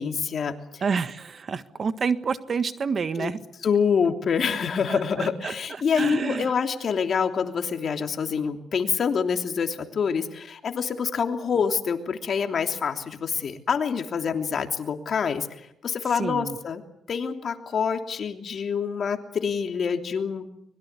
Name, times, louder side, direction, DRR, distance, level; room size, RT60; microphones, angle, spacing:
voice 1, 0.0-0.8 3.2-3.3 3.6-16.8 17.1-20.5, left 6 dB, 50° left, 5 dB, 3.0 m, -26 dB
voice 2, 0.8-3.4 4.9-5.5 5.9-6.5 16.1-16.6, right 5 dB, 45° right, 11 dB, 1.6 m, -28 dB
24.5 x 22.0 x 8.3 m, 0.76 s
cardioid pair, 90°, 0 cm